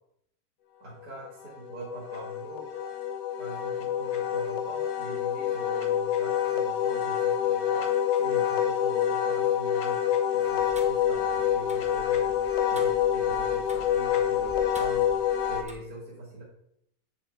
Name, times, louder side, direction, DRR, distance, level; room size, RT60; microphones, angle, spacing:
voice 1, 0.8-2.7 3.4-10.0 10.3-16.4, right 1 dB, 75° right, -6 dB, 2.5 m, -43 dB
Wind instrument woodwind instrument, 1.3-15.6, left 9 dB, 80° left, 1.3 m, -27 dB
Tick-tock, 10.4-15.7, right 1 dB, 5° right, 0.8 m, -47 dB
7.5 x 5.9 x 3.8 m, 0.77 s
omnidirectional pair, 1.6 m